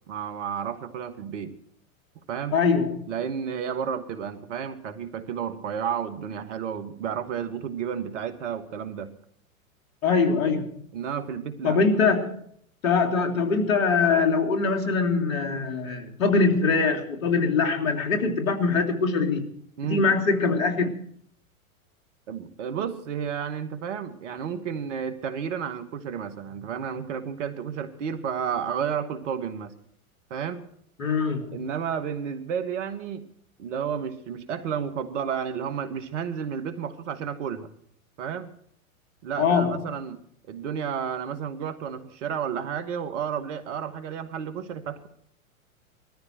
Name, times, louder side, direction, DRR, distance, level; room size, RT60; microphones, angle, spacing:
voice 1, 0.1-1.5 2.3-2.5 3.1-9.1 10.9-11.8 19.8-20.1 22.3-29.7 30.3-30.7 31.5-33.2 33.6-37.7 38.2-38.5 39.2-40.2 40.5-45.1, right 7 dB, 55° right, 2.4 m, -31 dB
voice 2, 2.5-3.0 10.0-10.8 11.6-12.4 12.8-19.4 19.9-20.9 31.0-31.6 39.4-39.8, left 4 dB, 70° left, 3.4 m, -23 dB
21.0 x 14.0 x 4.6 m
hypercardioid pair, 105°, 42 cm